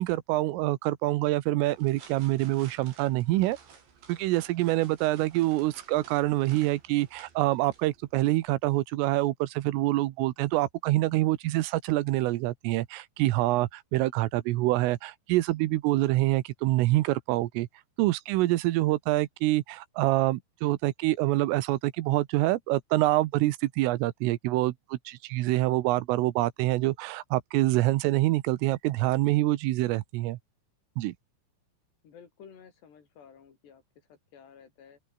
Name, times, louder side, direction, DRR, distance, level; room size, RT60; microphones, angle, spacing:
voice 1, 0.0-3.6 4.1-17.7 18.0-30.4 31.0-31.1, right 17 dB, 85° right, 3.6 m, -26 dB
sound 1, 1.6-8.5, right 6 dB, 65° right, 7.5 m, -54 dB
voice 2, 32.0-35.0, left 7 dB, 60° left, 6.5 m, -53 dB
open air
omnidirectional pair, 5.7 m